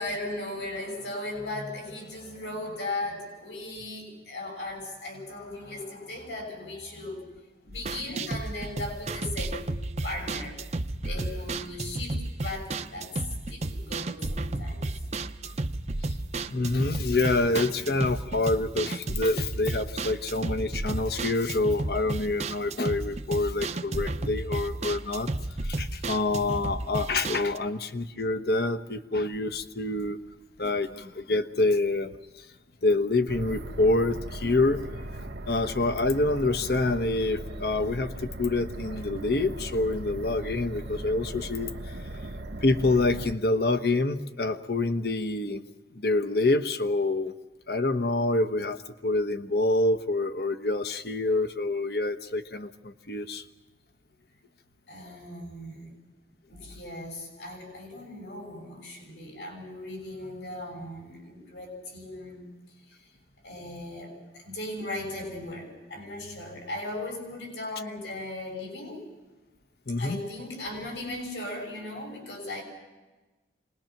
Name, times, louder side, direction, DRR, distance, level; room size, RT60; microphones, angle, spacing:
voice 1, 0.0-7.2 7.6-9.7 10.0-10.6 11.0-13.1 13.5-14.9 26.5-26.6 54.9-56.0 56.5-62.5 62.9-63.1 63.4-69.0 70.0-72.6, left 2 dB, 75° left, 2 dB, 6.8 m, -37 dB
sound 1, 7.7-27.6, right 2 dB, 40° right, 0.7 m, -33 dB
voice 2, 16.5-25.3 25.6-30.2 30.6-32.2 32.8-34.8 35.5-41.7 42.6-45.6 45.9-47.3 47.7-48.8 49.0-53.4 69.9-70.2, left 2 dB, 60° left, 9 dB, 1.1 m, -26 dB
sound 2, 33.3-43.3, right 1 dB, 80° right, 1.1 m, -38 dB
26.5 x 20.5 x 6.0 m, 1.2 s
head